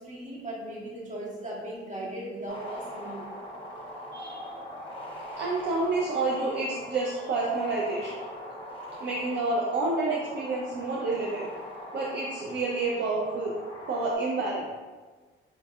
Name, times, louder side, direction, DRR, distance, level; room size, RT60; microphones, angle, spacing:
voice 1, 0.0-3.3, right 1 dB, 40° right, -6 dB, 1.5 m, -37 dB
sound 1, 2.5-14.1, equal, 25° left, 0.8 m, -41 dB
voice 2, 4.1-4.5 5.4-8.2 9.0-11.5 11.9-13.5 13.9-14.7, right 3 dB, 65° right, -3 dB, 0.5 m, -29 dB
4.9 x 2.7 x 2.3 m, 1.4 s
cardioid pair, 90°, 20 cm